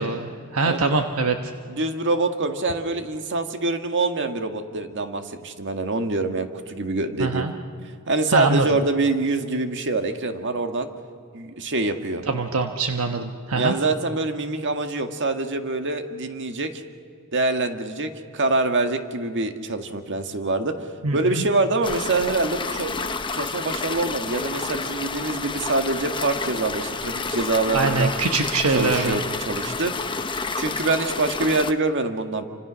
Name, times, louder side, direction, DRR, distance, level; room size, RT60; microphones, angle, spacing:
voice 1, 0.0-1.3 7.2-7.5 8.3-8.7 12.3-13.7 21.0-21.4 27.7-29.2, right 3 dB, 80° right, 5 dB, 1.2 m, -23 dB
voice 2, 1.7-7.5 8.1-10.9 11.3-12.2 13.5-16.8 17.3-20.7 21.1-23.0 23.3-28.1 28.7-29.9 30.5-32.4, right 2 dB, 55° right, 6 dB, 1.8 m, -25 dB
sound 1, 21.8-31.7, left 4 dB, 25° left, 0.9 m, -30 dB
28.5 x 26.0 x 6.3 m, 2.3 s
head